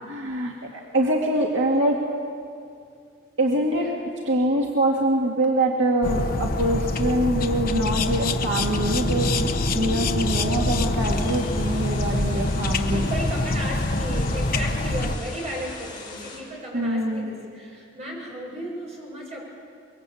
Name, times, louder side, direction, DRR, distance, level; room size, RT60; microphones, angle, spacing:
voice 1, 0.1-2.1 3.4-3.9 4.3-13.0 16.7-17.3, right 1 dB, 70° right, -1 dB, 2.3 m, -24 dB
sound 1, 6.0-15.2, left 2 dB, 45° left, 1.2 m, -25 dB
sound 2, 11.0-16.4, left 4 dB, 25° left, 5.6 m, -41 dB
voice 2, 12.9-19.4, equal, 35° right, -3 dB, 7.5 m, -34 dB
25.5 x 23.0 x 8.6 m, 2.4 s
head